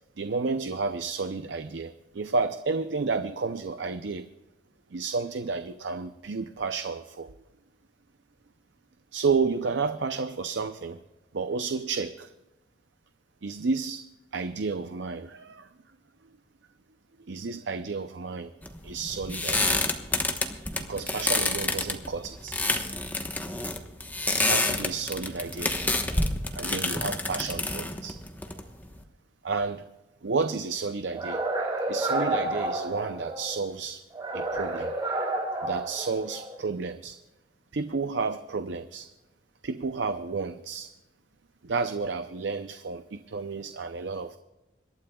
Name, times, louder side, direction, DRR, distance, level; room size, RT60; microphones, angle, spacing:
voice 1, 0.2-4.3 4.9-7.3 9.1-11.0 11.3-12.3 13.4-14.0 14.3-15.7 17.3-18.5 18.8-19.9 20.8-22.5 24.3-25.7 26.5-28.2 29.4-29.9 30.2-31.4 31.9-34.0 34.3-34.9 35.6-37.2 37.7-39.1 39.6-40.9 41.6-44.4, right 4 dB, 70° right, 9 dB, 0.6 m, -31 dB
sound 1, 18.6-29.0, left 2 dB, 10° left, 1.1 m, -28 dB
sound 2, 31.1-33.5 34.1-36.6, right 2 dB, 25° right, 4.7 m, -30 dB
26.5 x 12.5 x 2.3 m, 1.0 s
head